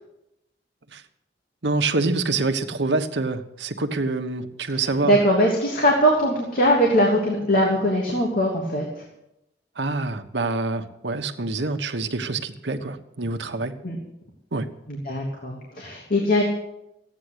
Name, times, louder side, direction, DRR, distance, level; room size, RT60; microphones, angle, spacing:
voice 1, 1.6-5.2 9.8-13.7 14.5-14.7, right 3 dB, 80° right, 7 dB, 1.3 m, -26 dB
voice 2, 5.0-9.0 13.8-14.0 14.9-16.4, equal, 55° left, -2 dB, 3.0 m, -21 dB
15.5 x 9.6 x 8.1 m, 0.86 s
head